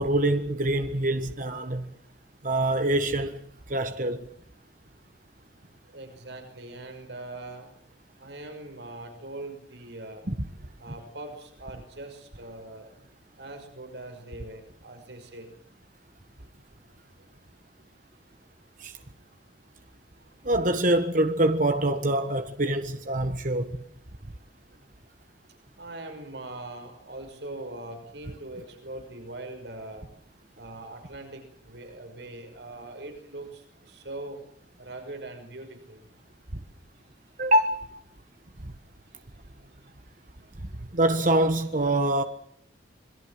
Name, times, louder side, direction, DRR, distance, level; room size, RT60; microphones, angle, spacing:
voice 1, 0.0-1.9 2.4-4.3 10.3-10.4 18.8-19.0 20.4-23.8 37.4-38.0 38.6-38.7 40.9-42.2, right 1 dB, 45° right, 1.5 m, -25 dB
voice 2, 5.8-7.7 8.2-10.2 10.8-12.9 13.4-15.5 17.2-17.3 25.8-30.1 30.6-34.4 34.8-36.0, right 2 dB, 70° right, 6.0 m, -41 dB
26.5 x 22.0 x 7.8 m
head